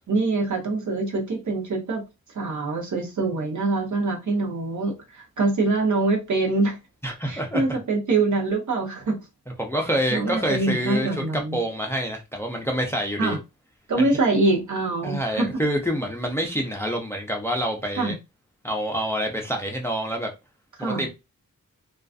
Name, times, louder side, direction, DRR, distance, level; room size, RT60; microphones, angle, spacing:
voice 1, 0.1-2.0 2.3-6.8 7.2-9.2 10.1-11.6 13.2-13.4 13.9-15.6 18.0-18.2 20.8-21.1, right 3 dB, 65° right, 0.9 m, -24 dB
voice 2, 7.0-7.6 9.6-11.2 11.5-13.4 14.0-14.1 15.0-18.1 18.6-20.3 20.8-21.1, equal, 10° left, 0.4 m, -27 dB
2.4 x 2.3 x 2.4 m
wide cardioid pair, 110°, 32 cm